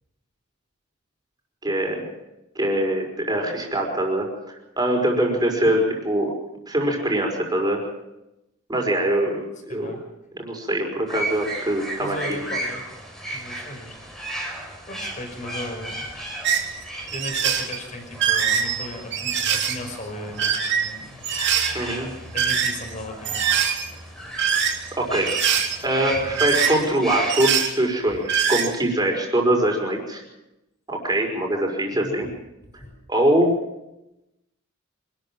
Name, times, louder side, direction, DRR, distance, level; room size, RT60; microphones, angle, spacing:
voice 1, 1.6-2.0 2.6-6.3 6.7-7.8 8.7-10.0 10.4-12.4 21.7-22.1 25.0-25.3 25.8-30.2 30.9-32.3 33.1-33.5, right 1 dB, 20° right, 1 dB, 5.4 m, -23 dB
voice 2, 9.7-10.1 11.9-12.8 13.3-14.0 14.9-16.1 17.1-21.2 22.3-23.4 32.0-32.2 32.7-32.9, left 1 dB, 35° left, 4 dB, 5.5 m, -36 dB
sound 1, 11.1-27.4, right 1 dB, ahead, 4.2 m, -35 dB
sound 2, 16.4-16.6 17.1-17.8 18.1-19.8 20.3-20.9 21.2-21.7 22.3-22.9 23.2-23.9 24.4-24.9 25.3-25.8 26.1-27.0 27.3-27.7 28.1-28.7, right 7 dB, 55° right, 3.0 m, -23 dB
26.5 x 13.5 x 7.7 m, 0.92 s
head